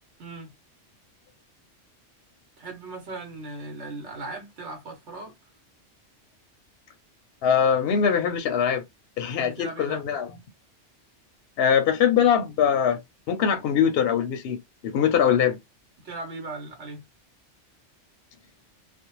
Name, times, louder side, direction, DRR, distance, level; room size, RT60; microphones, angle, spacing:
voice 1, 0.2-0.5 2.6-5.3 9.4-10.0 16.0-17.0, right 2 dB, 70° right, 1.1 m, -38 dB
voice 2, 7.4-8.8 9.2-10.3 11.6-13.0 13.3-14.6 14.8-15.6, left 8 dB, 65° left, 0.7 m, -22 dB
2.5 x 2.0 x 2.9 m
omnidirectional pair, 1.2 m